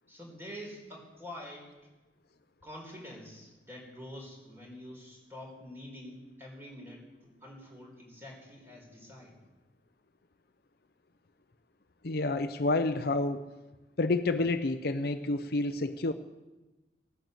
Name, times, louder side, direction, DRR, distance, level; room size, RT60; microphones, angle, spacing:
voice 1, 0.1-1.7 2.6-9.4, left 1 dB, 15° right, -1 dB, 4.2 m, -46 dB
voice 2, 12.0-13.5 14.0-16.1, left 2 dB, 55° left, 9 dB, 0.7 m, -29 dB
17.5 x 9.2 x 8.0 m, 1.1 s
head